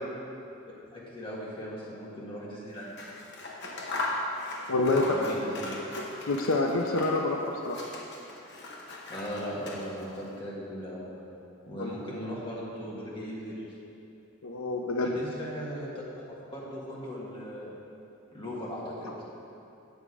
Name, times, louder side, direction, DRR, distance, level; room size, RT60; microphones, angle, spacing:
voice 1, 0.9-3.0 4.9-5.8 9.1-11.1 11.7-13.7 15.0-15.9 16.5-17.8 18.3-19.1, equal, 25° left, -6 dB, 1.8 m, -38 dB
Scissors, 2.8-7.3 7.6-10.2, left 2 dB, 55° left, 1.1 m, -38 dB
voice 2, 4.7-5.3 6.3-7.4 7.6-7.8 11.8-11.9 14.4-15.1, left 2 dB, 75° left, 1 dB, 0.6 m, -27 dB
8.0 x 8.0 x 4.9 m, 2.8 s
head